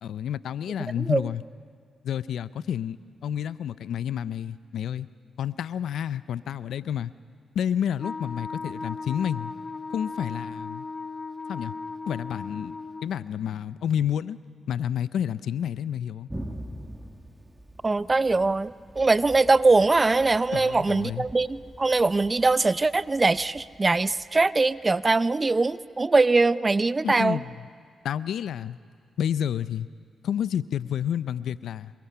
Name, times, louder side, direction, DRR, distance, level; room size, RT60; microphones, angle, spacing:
voice 1, 0.0-1.4 2.0-5.1 5.4-7.1 7.5-9.5 9.9-10.9 11.5-11.7 12.1-14.4 14.7-16.3 20.5-21.3 27.0-27.7 28.0-28.8 29.2-29.9 30.2-31.9, left 9 dB, 80° left, 17 dB, 0.5 m, -30 dB
Wind instrument woodwind instrument, 8.0-13.1, left 4 dB, 35° left, 1.0 m, -36 dB
Thunder, 16.3-25.7, right 1 dB, 15° right, 2.3 m, -44 dB
voice 2, 17.8-27.4, right 3 dB, 30° right, 16 dB, 0.6 m, -22 dB
26.5 x 23.0 x 5.7 m, 2.1 s
cardioid pair, 60°, 0 cm